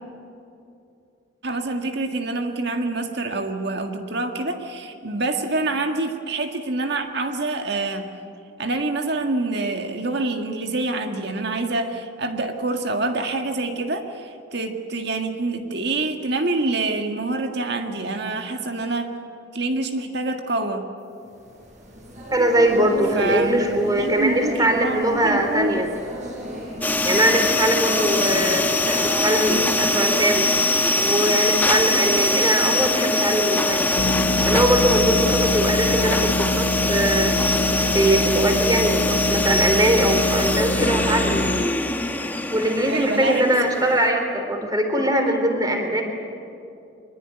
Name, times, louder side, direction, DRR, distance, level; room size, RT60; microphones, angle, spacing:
voice 1, 1.4-8.1 8.6-19.2 19.5-20.9 23.1-25.8 42.9-43.5, right 2 dB, 60° right, 5 dB, 1.8 m, -26 dB
sound 1, 21.2-35.3, equal, 40° right, 6.3 m, -35 dB
voice 2, 22.3-25.9 27.0-30.5 30.9-33.8 34.5-37.3 37.9-41.4 42.2-46.0, right 1 dB, 20° right, 4 dB, 3.6 m, -21 dB
sound 2, 26.8-44.1, left 2 dB, 10° left, 1.1 m, -22 dB
sound 3, 34.0-41.7, left 1 dB, 65° left, 0.8 m, -25 dB
24.0 x 21.5 x 9.8 m, 2.6 s
head